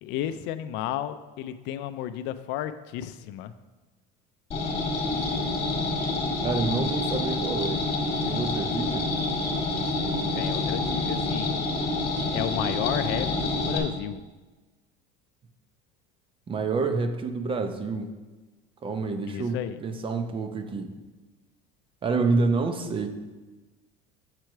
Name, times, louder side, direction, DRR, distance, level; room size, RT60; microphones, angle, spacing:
voice 1, 0.0-3.5 10.3-11.6 12.3-14.2 19.3-19.8, left 11 dB, 65° left, 12 dB, 0.4 m, -32 dB
sound 1, 4.5-13.8, left 2 dB, 30° left, 1.9 m, -27 dB
voice 2, 6.4-7.8 8.3-9.1 16.5-18.1 18.8-20.9 22.0-23.1, right 4 dB, 25° right, 7 dB, 0.6 m, -28 dB
7.6 x 4.6 x 4.6 m, 1.2 s
cardioid pair, 120°, 20 cm